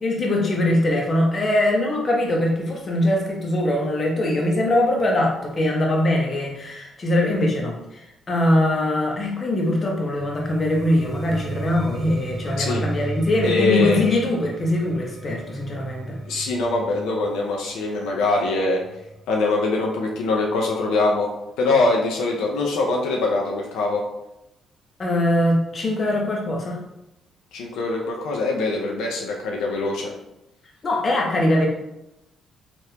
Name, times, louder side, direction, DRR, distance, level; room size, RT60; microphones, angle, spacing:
voice 1, 0.0-16.2 25.0-26.8 30.8-31.7, left 1 dB, 40° left, -1 dB, 0.8 m, -22 dB
sound 1, 10.2-20.0, right 3 dB, 40° right, 0.3 m, -34 dB
voice 2, 13.4-14.1 16.3-18.8 19.3-21.3 21.6-24.0 27.5-30.1, left 3 dB, 90° left, -1 dB, 0.5 m, -23 dB
3.3 x 2.5 x 2.8 m, 0.88 s
cardioid pair, 90°, 0 cm